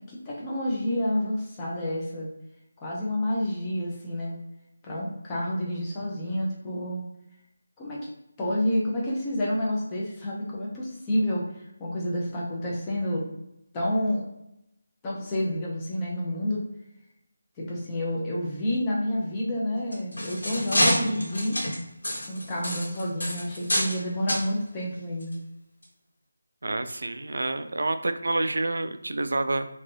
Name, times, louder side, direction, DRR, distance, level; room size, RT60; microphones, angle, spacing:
voice 1, 0.1-2.3 2.8-4.4 4.8-7.0 7.8-8.1 8.4-13.2 13.7-14.3 15.0-16.6 17.6-21.6 22.3-25.4, left 1 dB, 10° left, -5 dB, 0.5 m, -29 dB
sound 1, 19.8-24.0 24.3-24.5 25.2-25.3 25.8-25.9, left 1 dB, 80° left, 1.4 m, -27 dB
voice 2, 26.6-29.7, right 2 dB, 70° right, 10 dB, 0.3 m, -28 dB
3.2 x 2.5 x 2.6 m, 0.85 s
figure-of-eight pair, 180°, 0 cm